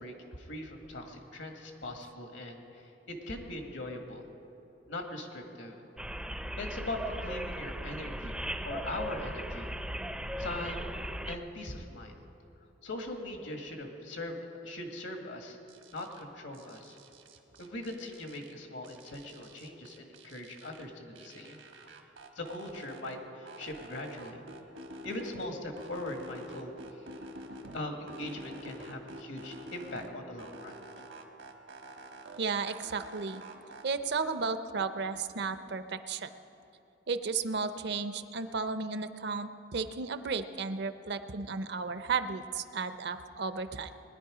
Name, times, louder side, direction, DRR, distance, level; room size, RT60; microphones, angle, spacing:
voice 1, 0.0-4.3 4.9-5.8 6.6-8.3 8.6-9.7 10.4-10.9 11.3-12.1 12.8-15.6 15.9-17.0 17.6-21.6 22.3-24.4 25.0-26.7 27.7-30.7, left 1 dB, 80° left, 3 dB, 1.7 m, -40 dB
sound 1, 6.0-11.4, equal, 5° right, 0.4 m, -37 dB
sound 2, 15.7-16.2 16.5-18.5 18.8-20.8 21.1-23.2 23.5-25.5 25.8-27.8 28.1-30.1 30.4-32.4 32.7-33.8, right 1 dB, 80° right, 1.3 m, -48 dB
voice 2, 32.4-33.4 33.8-36.3 37.1-43.9, right 4 dB, 60° right, 11 dB, 0.6 m, -34 dB
20.5 x 10.5 x 4.9 m, 2.9 s
head